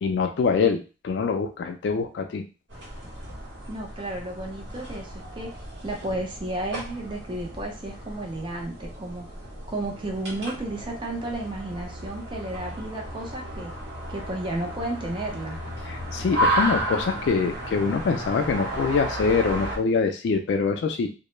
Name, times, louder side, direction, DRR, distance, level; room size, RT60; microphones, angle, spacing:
voice 1, 0.0-2.4 15.9-21.1, left 5 dB, 75° left, 5 dB, 0.3 m, -24 dB
sound 1, 2.7-19.8, right 1 dB, 80° right, 1.0 m, -33 dB
voice 2, 3.7-9.2 9.7-13.7 14.1-15.6, right 1 dB, 25° right, 0 dB, 0.6 m, -33 dB
2.2 x 2.0 x 3.1 m, 0.32 s
head